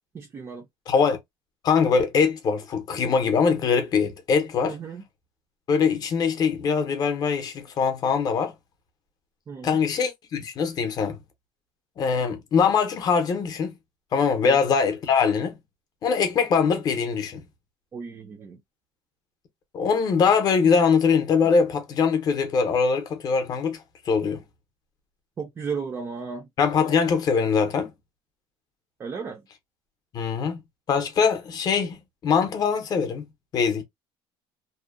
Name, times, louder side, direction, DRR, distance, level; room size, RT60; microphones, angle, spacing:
voice 1, 0.1-0.6 4.7-5.0 9.5-9.8 14.4-14.6 17.9-18.6 25.4-26.5 29.0-29.4, right 5 dB, 20° right, 0.4 m, -34 dB
voice 2, 0.9-1.2 1.6-4.8 5.7-8.5 9.6-11.2 12.0-13.8 14.1-15.5 16.0-17.4 19.7-23.8 24.1-24.4 26.6-27.9 30.1-30.6 30.9-33.3 33.5-33.8, left 5 dB, 35° left, 0.6 m, -22 dB
2.6 x 2.0 x 2.4 m
cardioid pair, 160°, 11 cm